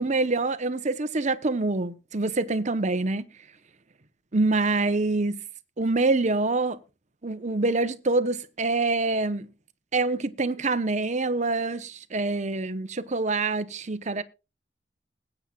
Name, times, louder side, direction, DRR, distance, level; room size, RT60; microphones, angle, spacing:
voice 1, 0.0-3.2 4.3-5.4 5.8-6.8 7.2-9.5 9.9-14.2, right 3 dB, 40° right, 0.9 m, -25 dB
20.5 x 8.9 x 2.4 m
head